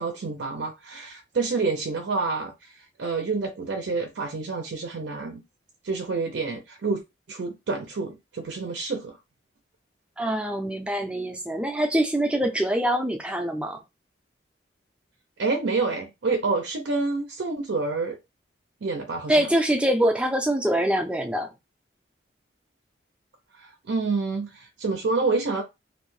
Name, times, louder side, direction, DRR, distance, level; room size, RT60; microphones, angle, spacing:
voice 1, 0.0-5.4 5.8-7.0 7.3-9.2 15.4-18.2 18.8-19.5 23.6-25.6, right 3 dB, 75° right, 0.5 m, -28 dB
voice 2, 10.2-13.8 19.3-21.5, right 1 dB, 5° right, 0.4 m, -24 dB
2.6 x 2.1 x 3.0 m
head